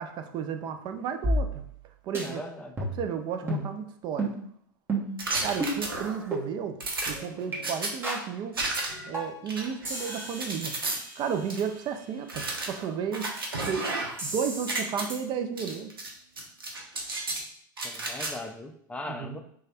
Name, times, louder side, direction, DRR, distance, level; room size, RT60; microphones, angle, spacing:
voice 1, 0.0-1.6 2.0-2.4 2.9-4.3 5.4-6.8 7.1-8.6 9.1-10.7 11.2-13.3 13.6-13.9 14.2-15.9 19.1-19.4, right 7 dB, 40° right, 7 dB, 0.5 m, -33 dB
sound 1, 1.2-1.9 2.1-2.3 2.8-3.1 3.5-3.7 4.2-4.4 4.9-5.2 5.6-5.8 6.3-6.4 7.0-7.1 7.5-7.6 8.0-8.3 8.7-8.8 9.1-9.5 9.8-11.7 14.2-14.8 15.1-15.2, right 1 dB, 20° right, 1.3 m, -32 dB
voice 2, 2.2-2.8 3.4-3.6 17.8-19.4, left 1 dB, 10° left, 5 dB, 0.5 m, -39 dB
sound 2, 5.2-6.3 6.8-7.9 8.5-9.1 9.5-11.0 11.5-11.6 12.3-14.3 14.5-15.0 15.6-16.1 16.4-17.4 17.8-18.3, right 2 dB, 90° right, 0.7 m, -33 dB
3.1 x 2.3 x 4.3 m, 0.66 s
hypercardioid pair, 90°, 12 cm